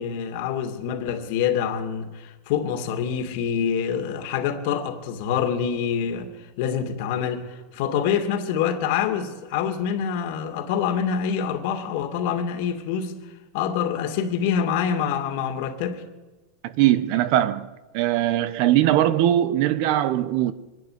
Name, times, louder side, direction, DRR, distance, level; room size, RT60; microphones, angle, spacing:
voice 1, 0.0-6.3 6.6-13.2 13.5-16.0, left 8 dB, 55° left, 2.6 m, -26 dB
voice 2, 16.6-17.7 17.9-20.5, right 13 dB, 50° right, 1.0 m, -20 dB
24.0 x 11.0 x 9.9 m
supercardioid pair, 150°, 0 cm